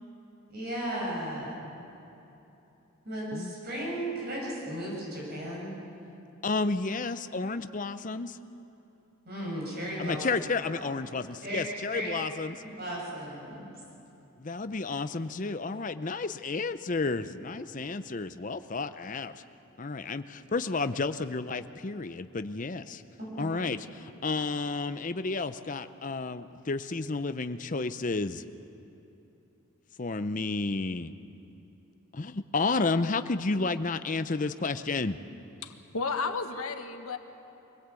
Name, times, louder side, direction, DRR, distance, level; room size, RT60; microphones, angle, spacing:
voice 1, 0.5-1.6 3.0-5.7 9.3-10.2 11.4-11.6 11.9-12.1 12.8-13.7 23.2-23.4, right 1 dB, 45° right, -4 dB, 7.1 m, -35 dB
voice 2, 6.4-8.4 10.0-12.6 14.4-19.4 19.8-23.0 23.4-28.4 30.0-31.1 32.1-35.2, left 3 dB, 35° left, 11 dB, 0.6 m, -31 dB
voice 3, 35.6-37.2, left 4 dB, 85° left, 6 dB, 1.5 m, -33 dB
24.0 x 18.0 x 8.3 m, 3.0 s
head